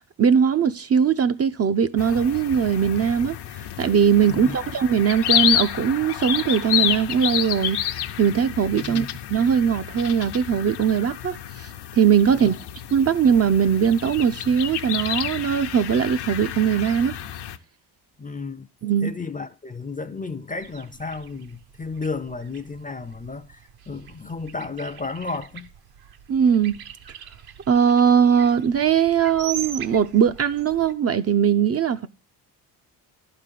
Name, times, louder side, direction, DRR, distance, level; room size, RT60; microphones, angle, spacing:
voice 1, 0.2-3.4 3.8-7.8 8.2-11.7 12.0-12.5 12.9-17.2 18.8-19.1 26.3-26.8 27.7-32.1, right 7 dB, 35° right, 0.6 m, -20 dB
sound 1, 2.0-17.6, left 10 dB, 65° left, 0.8 m, -29 dB
voice 2, 4.3-4.6 8.8-9.1 12.3-12.6 18.2-18.7 19.0-25.7, left 4 dB, 20° left, 0.6 m, -33 dB
sound 2, 20.6-30.9, right 9 dB, 60° right, 1.0 m, -41 dB
11.0 x 4.0 x 7.4 m
supercardioid pair, 75°, 43 cm